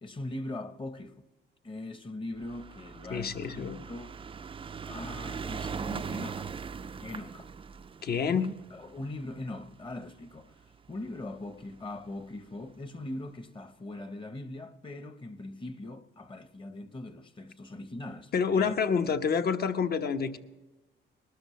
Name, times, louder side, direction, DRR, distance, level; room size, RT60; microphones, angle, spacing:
voice 1, 0.0-1.2 1.6-3.5 3.8-4.1 4.9-6.5 7.0-7.5 8.3-10.6 10.9-18.8, left 2 dB, 25° left, 1.0 m, -40 dB
sound 1, 2.4-10.9 11.7-11.8 12.0-12.1 12.3-12.4, right 6 dB, 25° right, 0.4 m, -40 dB
voice 2, 3.1-3.8 8.0-8.5 18.3-20.4, left 6 dB, 50° left, 1.1 m, -28 dB
20.5 x 13.0 x 3.2 m
cardioid pair, 90°, 20 cm